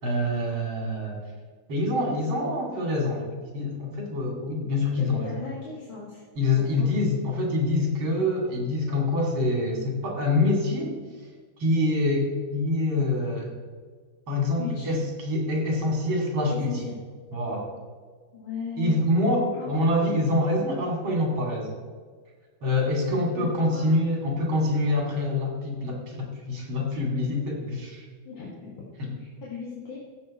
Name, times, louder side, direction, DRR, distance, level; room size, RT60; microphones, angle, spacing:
voice 1, 0.0-1.2 1.7-3.3 3.5-5.3 6.4-11.0 11.6-13.5 14.3-16.8 17.3-17.7 18.8-21.8 22.6-28.1 29.0-29.1, left 2 dB, 75° right, 0 dB, 3.4 m, -25 dB
voice 2, 5.0-6.2 6.6-6.9 14.6-15.0 16.5-16.9 18.3-19.0 19.5-20.1 23.3-23.9 28.2-28.9 29.2-30.0, left 5 dB, 70° left, -5 dB, 2.6 m, -37 dB
15.5 x 7.1 x 4.3 m, 1.5 s
omnidirectional pair, 2.2 m